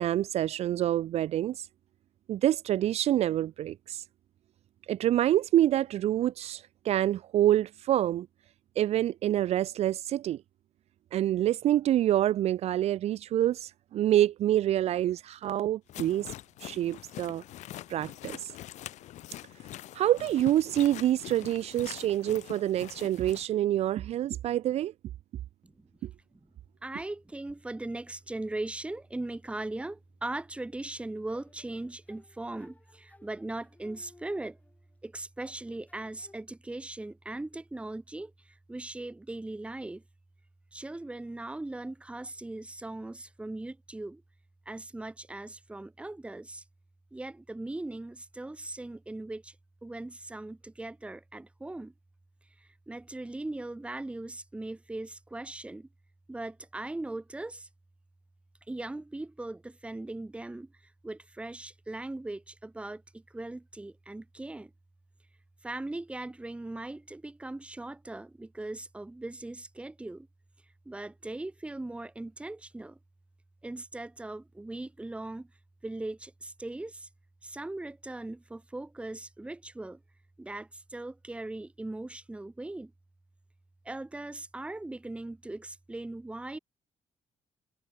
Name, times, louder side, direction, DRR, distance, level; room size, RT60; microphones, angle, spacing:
voice 1, 0.0-1.7 2.3-4.0 4.9-8.3 8.8-10.4 11.1-16.3 16.6-17.4 17.9-18.5 19.9-24.9, right 12 dB, 65° right, 0.6 m, -27 dB
sound 1, 15.9-23.5, left 14 dB, 80° left, 0.8 m, -44 dB
voice 2, 26.8-34.6 35.0-40.0 40.7-44.2 44.7-46.6 47.1-49.6 49.8-51.9 52.6-55.9 56.3-57.7 58.7-64.7 65.6-70.3 70.9-73.0 73.6-75.5 75.8-77.1 77.4-80.0 80.4-82.9 83.8-86.6, right 2 dB, 10° right, 2.2 m, -39 dB
sound 2, 31.3-35.0 35.4-36.4, left 2 dB, 15° left, 3.8 m, -60 dB
cardioid pair, 160°, 12 cm